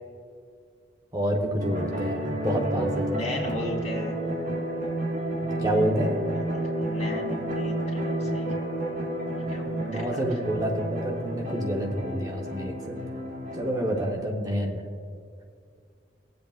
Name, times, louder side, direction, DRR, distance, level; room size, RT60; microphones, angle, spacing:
voice 1, 1.1-3.2 5.4-6.2 9.7-13.0 13.5-14.8, right 1 dB, 20° right, 0 dB, 0.8 m, -28 dB
sound 1, 1.6-14.1, right 1 dB, 55° right, 2.6 m, -31 dB
voice 2, 3.1-4.2 6.8-8.5 9.3-10.3, left 1 dB, 40° left, -4 dB, 2.6 m, -36 dB
21.0 x 7.8 x 2.4 m, 2.3 s
head